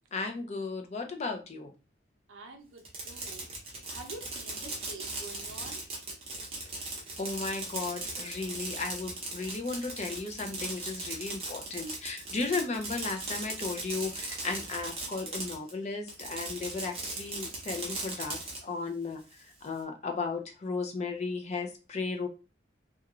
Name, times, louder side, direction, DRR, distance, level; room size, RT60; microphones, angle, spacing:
voice 1, 0.1-1.7 6.8-6.9 7.2-22.3, left 4 dB, 35° left, 4 dB, 0.4 m, -35 dB
voice 2, 2.3-3.5 3.8-5.8, right 3 dB, 80° right, 5 dB, 0.6 m, -47 dB
Fireworks, 2.8-15.7 16.1-18.6, right 2 dB, 30° right, 0.7 m, -38 dB
2.4 x 2.2 x 2.9 m, 0.31 s
head